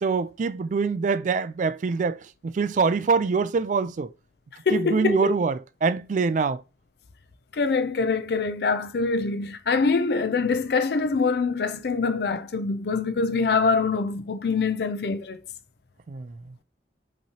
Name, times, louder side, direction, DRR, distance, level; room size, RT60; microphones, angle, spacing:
voice 1, 0.0-2.2 2.4-4.1 4.7-6.6 16.1-16.4, right 5 dB, 45° right, 0.3 m, -24 dB
voice 2, 4.7-5.4 7.5-15.4, left 4 dB, 60° left, 0.5 m, -24 dB
5.5 x 3.1 x 2.8 m
head